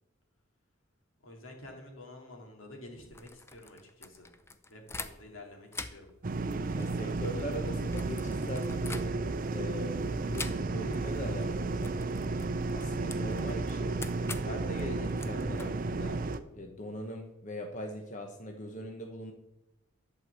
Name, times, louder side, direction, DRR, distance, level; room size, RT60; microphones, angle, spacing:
voice 1, 1.2-4.3 4.7-6.1, left 1 dB, 80° left, 1 dB, 2.4 m, -49 dB
sound 1, 3.0-5.4 5.7-9.5 10.3-11.0 11.3-11.5 11.8-16.4, left 3 dB, 15° left, 0.5 m, -45 dB
sound 2, 6.2-16.4, right 3 dB, 45° right, 0.5 m, -33 dB
voice 2, 6.7-11.9 12.6-13.9 14.4-16.2 16.5-19.3, equal, 35° left, 3 dB, 1.0 m, -41 dB
11.5 x 4.8 x 7.8 m, 0.96 s
head